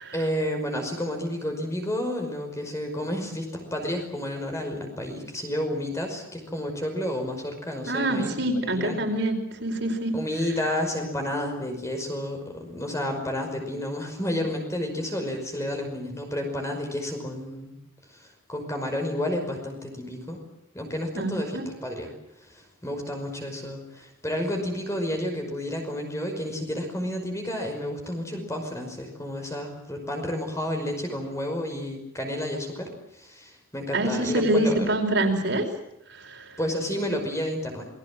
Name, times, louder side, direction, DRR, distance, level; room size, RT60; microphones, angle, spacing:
voice 1, 0.1-9.0 10.1-17.8 18.1-20.4 20.7-22.1 22.5-34.9 36.6-37.9, left 1 dB, 15° left, 3 dB, 5.5 m, -31 dB
voice 2, 7.9-10.2 21.1-21.6 33.9-35.7 36.1-36.6, right 1 dB, 55° right, 3 dB, 5.0 m, -26 dB
28.5 x 21.5 x 7.6 m, 0.80 s
head